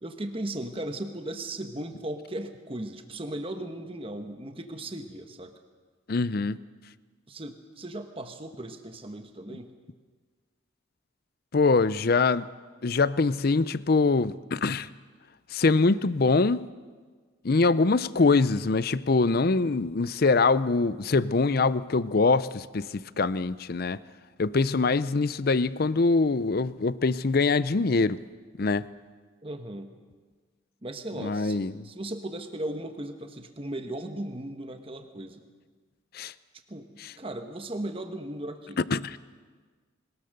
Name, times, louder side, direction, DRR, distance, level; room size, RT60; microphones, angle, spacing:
voice 1, 0.0-5.5 7.3-9.7 29.4-29.9 30.8-35.4 36.7-38.9, right 1 dB, 30° right, 6 dB, 1.2 m, -37 dB
voice 2, 6.1-6.6 11.5-12.5 12.8-14.9 15.5-16.7 17.4-24.0 24.4-28.2 28.6-28.8 31.2-31.7 36.1-36.3 38.9-39.2, left 3 dB, 50° left, 17 dB, 0.5 m, -24 dB
21.5 x 20.0 x 6.6 m, 1.5 s
head